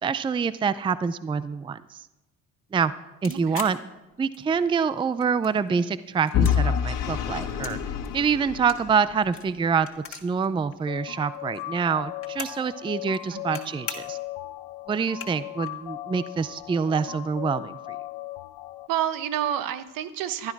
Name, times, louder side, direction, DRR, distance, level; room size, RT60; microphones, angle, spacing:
voice 1, 0.0-2.1 2.7-2.9 3.2-3.8 4.2-7.8 8.1-14.2 14.9-18.0, right 6 dB, 15° right, 15 dB, 0.4 m, -26 dB
sound 1, 3.2-4.7 5.0-5.8 6.1-7.8 8.0-10.5 10.7-10.8 11.0-12.7 13.0-13.6 13.9-14.3 14.7-14.8 15.0-15.7, left 7 dB, 40° left, 2.0 m, -40 dB
voice 2, 3.3-3.7 13.3-13.7 18.9-20.5, right 10 dB, 70° right, 12 dB, 1.1 m, -29 dB
Vehicle / Engine, 6.3-9.3, left 8 dB, 65° left, 1.6 m, -26 dB
sound 2, 10.9-18.9, left 16 dB, 80° left, 1.0 m, -38 dB
15.0 x 12.0 x 4.7 m, 1.0 s
cardioid pair, 100°, 35 cm